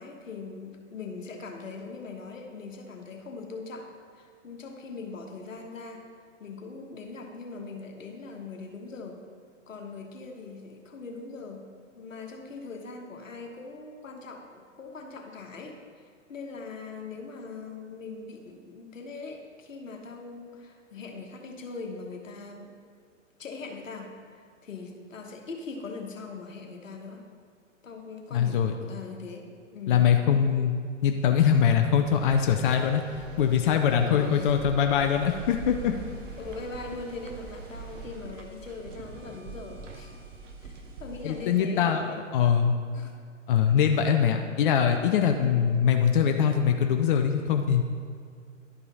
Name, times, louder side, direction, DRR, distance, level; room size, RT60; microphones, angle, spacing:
voice 1, 0.0-3.9 4.1-6.0 6.4-9.2 9.7-11.7 11.9-22.7 23.4-24.1 24.6-27.2 27.8-30.1 34.0-34.6 36.4-40.2 40.6-40.7 41.0-42.3 42.9-43.1, left 4 dB, 75° left, 3 dB, 1.3 m, -41 dB
voice 2, 28.3-28.7 29.9-30.8 31.0-35.9 41.2-42.1 42.3-42.7 43.5-47.8, left 8 dB, 40° left, 5 dB, 0.5 m, -23 dB
sound 1, 32.0-38.1, right 3 dB, 25° right, 1.9 m, -43 dB
sound 2, 35.0-41.6, right 4 dB, 70° right, 1.1 m, -45 dB
11.0 x 5.4 x 4.0 m, 2.2 s
figure-of-eight pair, 115°, 39 cm